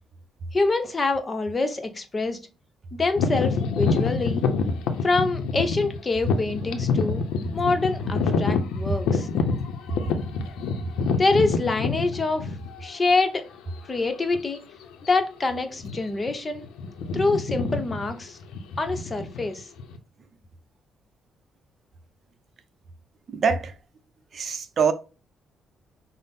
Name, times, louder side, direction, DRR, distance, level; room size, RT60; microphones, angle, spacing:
voice 1, 0.5-2.4 2.9-4.4 5.0-7.2 7.5-9.3 11.2-12.5 12.8-13.5 13.9-14.6 15.1-16.6 17.1-18.4 18.8-19.7, left 3 dB, 30° left, 0.7 m, -25 dB
sound 1, 3.2-12.9 13.6-13.7 14.3-14.6 14.8-15.1 15.7-16.3 16.6-20.0, left 4 dB, 90° left, 0.5 m, -27 dB
voice 2, 23.3-23.8 24.3-24.9, right 6 dB, 50° right, 0.5 m, -24 dB
5.5 x 2.0 x 3.5 m
cardioid pair, 90°, 0 cm